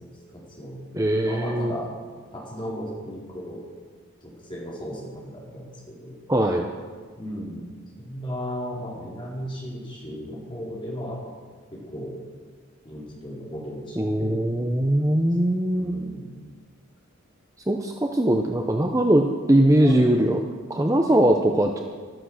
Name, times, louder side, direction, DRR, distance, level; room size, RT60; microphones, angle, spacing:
voice 1, 0.0-0.8 1.3-1.9 2.3-3.6 4.2-6.2 7.2-7.7 8.0-11.2 11.7-12.1 12.8-14.4 15.4-16.3 19.8-20.1, equal, 20° left, -5 dB, 4.4 m, -35 dB
voice 2, 0.9-1.8 6.3-6.7 14.0-15.9 17.7-20.4 20.7-21.8, right 1 dB, 15° right, 3 dB, 0.7 m, -21 dB
13.5 x 12.5 x 6.4 m, 1.6 s
head